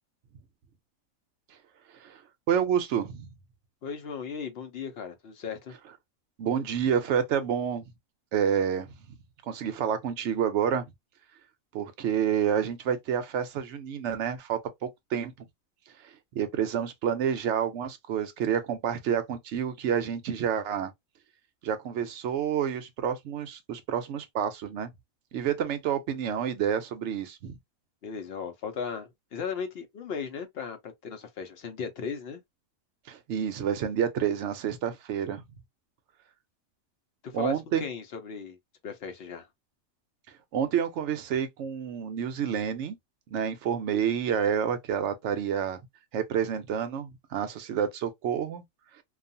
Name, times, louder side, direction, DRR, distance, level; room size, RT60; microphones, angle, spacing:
voice 1, 2.5-3.3 6.4-7.8 8.3-8.9 9.5-10.8 11.7-15.3 16.0-20.9 21.6-24.9 25.3-27.6 33.1-35.4 37.3-37.9 40.5-43.0 43.3-45.8 46.1-48.6, right 8 dB, 65° right, 0.8 m, -29 dB
voice 2, 3.8-5.7 28.0-32.4 37.2-38.6 38.8-39.5, left 6 dB, 55° left, 0.8 m, -37 dB
2.4 x 2.3 x 2.6 m
omnidirectional pair, 1.4 m